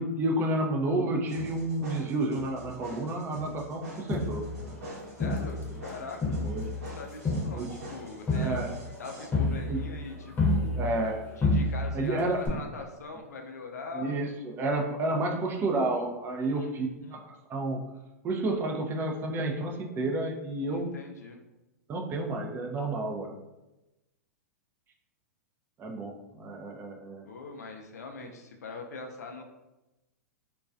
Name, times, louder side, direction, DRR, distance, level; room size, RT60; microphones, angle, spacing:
voice 1, 0.0-4.4 6.4-6.6 7.5-7.7 8.3-8.7 9.7-9.8 10.8-11.2 11.9-12.4 13.9-17.2 17.5-17.8 18.2-20.9 21.9-23.3 25.8-27.2, right 2 dB, 25° right, 2 dB, 0.4 m, -30 dB
sound 1, 1.3-9.3, right 1 dB, 70° right, 0.8 m, -45 dB
Crowd, 4.1-5.9 6.2-11.1 11.4-12.1 12.5-12.6, left 2 dB, 20° left, 0.7 m, -29 dB
voice 2, 5.2-6.4 6.8-8.7 9.0-10.8 11.4-14.2 15.0-15.3 16.4-17.2 20.7-21.4 27.3-29.4, left 4 dB, 80° left, 3 dB, 0.4 m, -42 dB
2.3 x 2.2 x 2.4 m, 1.0 s
hypercardioid pair, 110°, 9 cm